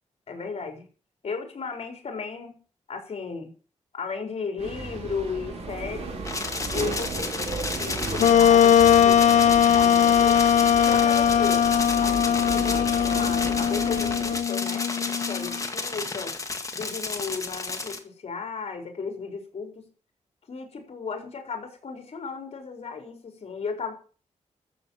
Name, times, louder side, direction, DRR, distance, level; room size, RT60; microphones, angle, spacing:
voice 1, 0.3-0.9 1.2-2.6 2.9-3.5 3.9-6.2 6.7-10.5 10.7-11.7 12.0-14.9 15.3-16.3 16.7-19.9 20.5-23.9, left 5 dB, 60° left, 4 dB, 4.4 m, -35 dB
sound 1, 4.6-14.4, right 4 dB, 65° right, 4.4 m, -35 dB
sound 2, 6.3-18.0, left 3 dB, 25° left, 2.0 m, -32 dB
Wind instrument woodwind instrument, 8.2-15.6, left 9 dB, 80° left, 0.5 m, -20 dB
14.0 x 7.7 x 7.3 m, 0.38 s
wide cardioid pair, 135°, 12 cm